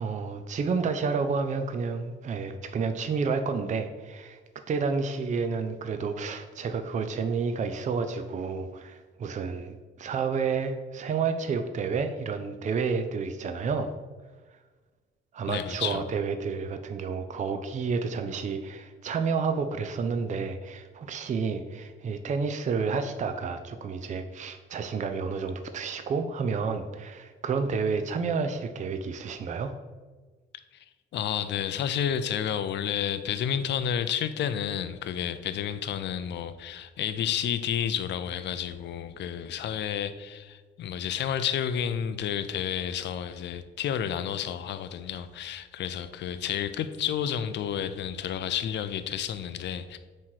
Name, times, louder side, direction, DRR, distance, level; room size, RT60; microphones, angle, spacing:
voice 1, 0.0-4.4 4.7-13.9 15.3-29.7, right 5 dB, 40° right, 7 dB, 0.5 m, -30 dB
voice 2, 15.5-16.1 30.7-30.8 31.1-50.0, left 9 dB, 65° left, 11 dB, 0.5 m, -31 dB
7.5 x 3.1 x 4.5 m, 1.4 s
cardioid pair, 90°, 20 cm